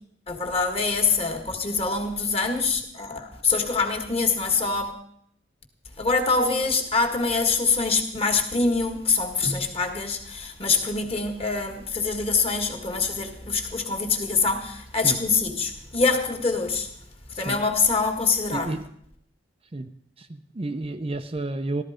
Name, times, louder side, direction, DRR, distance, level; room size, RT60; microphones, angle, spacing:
voice 1, 0.3-4.9 6.0-16.9 17.3-18.7, left 4 dB, 30° left, 1.8 m, -24 dB
voice 2, 18.5-18.8 19.7-19.9 20.2-21.8, right 2 dB, 30° right, 0.6 m, -30 dB
14.5 x 13.0 x 5.0 m
head